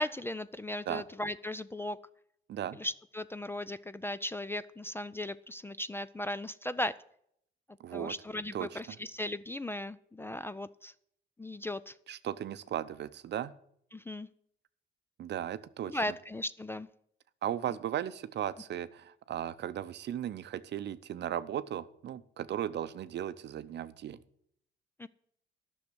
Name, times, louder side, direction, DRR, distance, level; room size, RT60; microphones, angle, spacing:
voice 1, 0.0-2.0 2.7-7.0 7.9-10.9 11.4-11.9 13.9-14.3 15.9-16.9 25.0-25.1, left 1 dB, 10° left, 16 dB, 0.3 m, -37 dB
voice 2, 7.8-8.1 8.5-9.0 12.1-13.5 15.2-16.0 17.4-24.2, right 10 dB, 60° right, 13 dB, 0.6 m, -36 dB
10.5 x 6.4 x 7.8 m, 0.69 s
cardioid pair, 90°, 20 cm